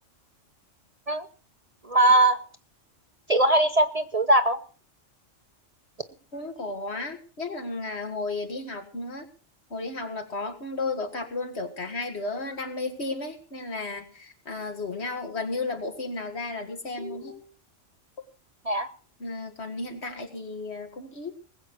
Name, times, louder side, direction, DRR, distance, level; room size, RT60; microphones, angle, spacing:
voice 1, 1.8-2.4 3.3-4.6 18.6-18.9, right 1 dB, 35° right, 8 dB, 0.8 m, -20 dB
voice 2, 6.3-9.3 9.7-17.4 19.2-21.3, left 3 dB, 60° left, 5 dB, 2.3 m, -33 dB
20.0 x 8.2 x 6.2 m, 0.39 s
omnidirectional pair, 1.3 m